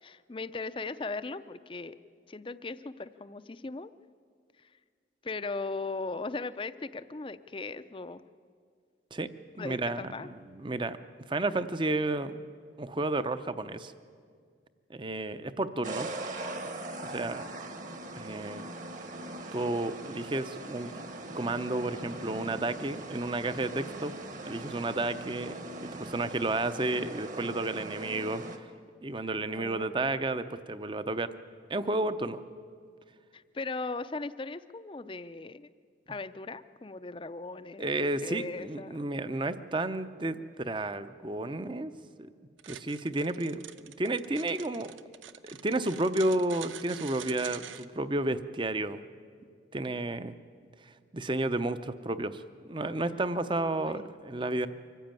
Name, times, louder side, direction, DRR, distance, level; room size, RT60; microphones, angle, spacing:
voice 1, 0.0-2.0 2.3-3.9 4.6-4.7 5.2-8.2 9.6-10.3 29.2-30.2 33.3-35.7 36.1-39.0 53.5-54.0, left 3 dB, 25° left, 13 dB, 0.5 m, -38 dB
voice 2, 9.6-11.0 11.3-12.4 12.8-13.9 14.9-16.1 17.0-17.5 18.1-18.7 19.5-20.9 21.3-24.1 24.5-28.4 29.0-31.3 31.7-32.4 37.8-41.9 42.7-44.9 45.4-49.0 49.7-50.3 51.1-54.7, right 2 dB, 25° right, 12 dB, 0.6 m, -32 dB
sound 1, 15.8-28.6, right 2 dB, 40° right, 1.4 m, -41 dB
sound 2, 42.6-47.9, right 9 dB, 90° right, 0.7 m, -45 dB
24.5 x 15.0 x 9.0 m, 2.1 s
head